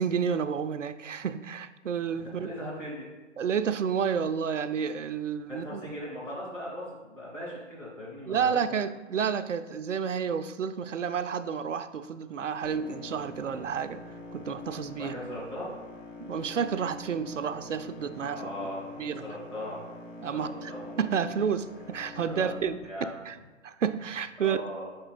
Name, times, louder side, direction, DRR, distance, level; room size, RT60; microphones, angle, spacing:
voice 1, 0.0-2.5 3.4-5.8 8.3-15.1 16.3-18.5 19.0-19.2 20.2-20.7 21.0-22.8 23.2-23.4 23.6-24.6, right 7 dB, 75° right, 12 dB, 0.5 m, -30 dB
voice 2, 2.2-3.1 5.5-8.8 15.0-15.7 18.3-18.8 19.2-19.8 20.3-20.9 22.3-22.5 22.8-23.2 24.4-24.9, left 1 dB, 5° left, -8 dB, 0.5 m, -39 dB
sound 1, 12.6-22.6, left 2 dB, 80° left, 1.5 m, -44 dB
5.7 x 4.4 x 5.0 m, 1.2 s
figure-of-eight pair, 135°, 38 cm